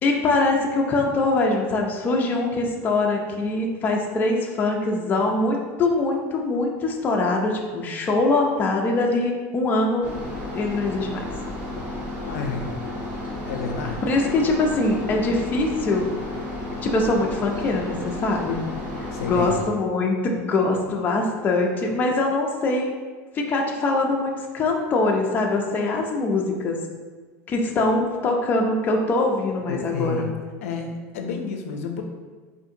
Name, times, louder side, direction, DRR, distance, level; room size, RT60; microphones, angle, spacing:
voice 1, 0.0-10.1 10.5-11.2 14.1-16.1 16.8-18.6 19.2-22.9 23.3-26.8 27.5-30.3, left 2 dB, 25° left, 1 dB, 0.4 m, -23 dB
sound 1, 10.0-19.6, left 2 dB, 20° right, 0.9 m, -32 dB
voice 2, 12.2-12.7 13.5-14.2 19.1-19.6 29.7-30.3 30.6-32.0, left 4 dB, 90° left, 4 dB, 0.4 m, -30 dB
4.6 x 2.5 x 2.7 m, 1.4 s
supercardioid pair, 145°, 7 cm